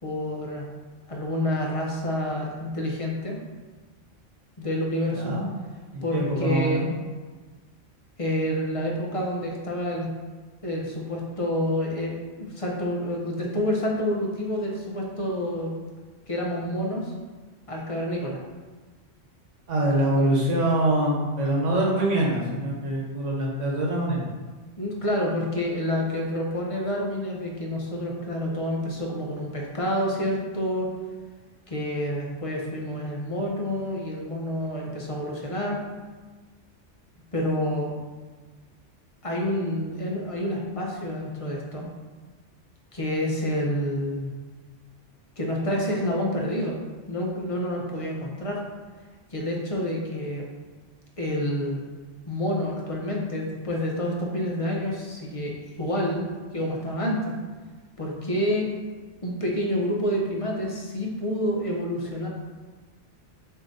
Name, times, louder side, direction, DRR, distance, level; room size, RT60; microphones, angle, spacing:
voice 1, 0.0-0.7 1.1-3.4 4.6-5.3 6.0-6.8 8.2-10.1 10.6-15.7 16.3-17.1 17.7-18.4 24.8-30.9 31.7-35.8 37.3-37.9 39.2-41.9 42.9-44.3 45.4-46.7 47.1-48.6 49.3-50.4 51.2-51.8 52.3-56.2 56.5-57.3 58.0-58.7 59.2-62.3, left 1 dB, 35° left, -2 dB, 0.6 m, -28 dB
voice 2, 5.9-6.9 19.7-24.2, right 1 dB, 85° right, -3 dB, 1.3 m, -24 dB
6.9 x 2.7 x 2.6 m, 1.4 s
omnidirectional pair, 1.2 m